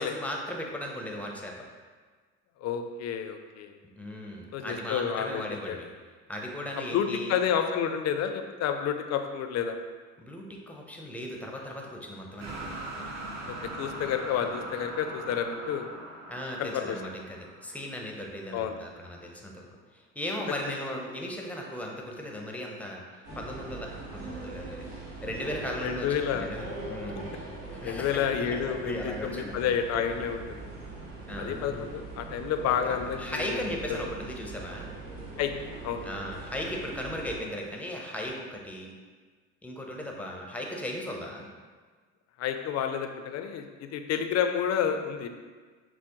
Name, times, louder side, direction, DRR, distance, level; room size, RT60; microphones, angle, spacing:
voice 1, 0.0-1.5 4.0-5.9 6.3-7.4 10.2-12.8 16.3-19.7 19.9-24.9 25.2-27.3 27.7-29.7 31.3-31.7 32.8-34.9 36.0-38.9 39.6-41.5, left 1 dB, 5° left, 0 dB, 0.6 m, -37 dB
voice 2, 2.6-3.7 4.5-5.8 6.9-9.8 13.5-15.9 16.6-17.0 18.5-18.7 25.8-26.5 27.8-30.6 31.4-33.6 35.4-35.5 35.8-36.1 42.4-45.3, left 8 dB, 50° left, 6 dB, 0.4 m, -30 dB
sound 1, 12.4-18.4, right 2 dB, 50° right, 1.0 m, -41 dB
sound 2, 23.2-37.4, right 3 dB, 80° right, 1.1 m, -41 dB
6.0 x 2.0 x 2.9 m, 1.5 s
supercardioid pair, 90°, 34 cm